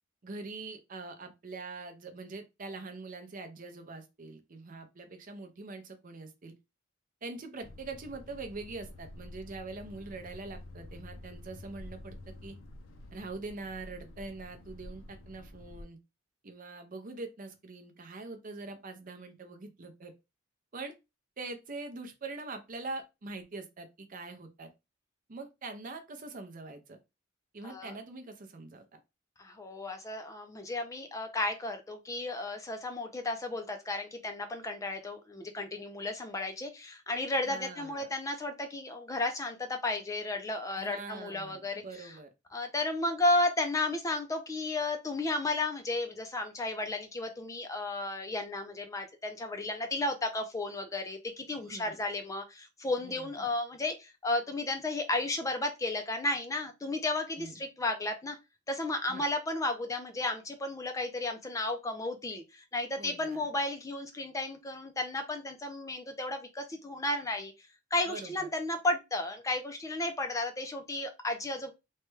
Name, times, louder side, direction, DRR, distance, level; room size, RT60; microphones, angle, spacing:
voice 1, 0.2-6.5 7.2-12.6 13.1-16.0 16.4-20.1 20.7-20.9 21.4-24.7 25.3-27.0 27.5-29.0 37.5-38.1 40.8-42.3 51.6-52.0 53.0-53.5 57.4-57.6 59.1-59.2 63.0-63.5 68.1-68.5, right 3 dB, 40° right, 0.5 m, -43 dB
sound 1, 7.6-15.8, left 1 dB, 75° left, 0.5 m, -49 dB
voice 2, 27.6-27.9 29.4-42.1 42.5-58.4 58.7-67.5 67.9-71.7, left 2 dB, 15° left, 0.4 m, -33 dB
3.2 x 2.2 x 3.1 m
head